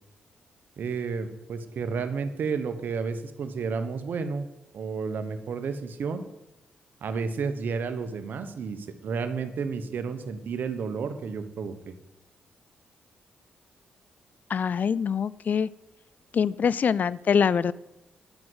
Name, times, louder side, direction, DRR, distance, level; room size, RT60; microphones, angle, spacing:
voice 1, 0.8-6.2 7.0-11.9, right 5 dB, 70° right, 9 dB, 1.2 m, -31 dB
voice 2, 14.5-15.7 16.3-17.7, left 7 dB, 55° left, 20 dB, 0.4 m, -24 dB
10.5 x 6.1 x 8.1 m, 0.93 s
cardioid pair, 70°, 3 cm